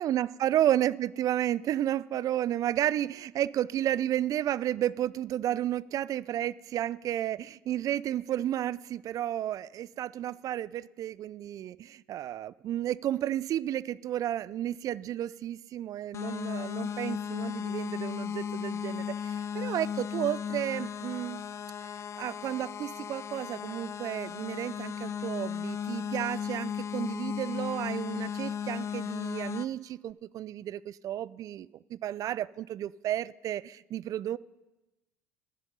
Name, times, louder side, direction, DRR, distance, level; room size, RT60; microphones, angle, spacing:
voice 1, 0.0-21.4 22.2-34.4, right 12 dB, 45° right, 21 dB, 0.4 m, -32 dB
sound 1, 16.1-29.6, left 8 dB, 35° left, 0.7 m, -35 dB
15.5 x 10.5 x 5.4 m, 1.1 s
hypercardioid pair, 65°, 8 cm